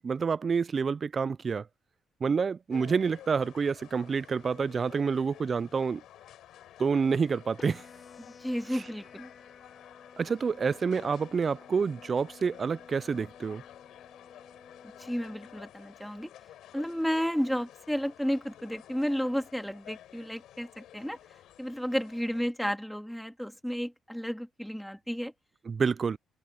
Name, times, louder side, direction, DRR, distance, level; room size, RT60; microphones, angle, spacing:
voice 1, 0.0-1.6 2.2-6.0 6.8-7.8 10.2-13.6 25.7-26.2, right 5 dB, 40° right, 0.4 m, -28 dB
sound 1, 2.7-22.5, left 12 dB, 80° left, 4.5 m, -52 dB
sound 2, 7.6-15.6, left 5 dB, 35° left, 4.7 m, -53 dB
voice 2, 8.4-9.3 15.0-16.3 16.7-21.2 21.6-25.3, equal, ahead, 2.7 m, -32 dB
cardioid pair, 90°, 0 cm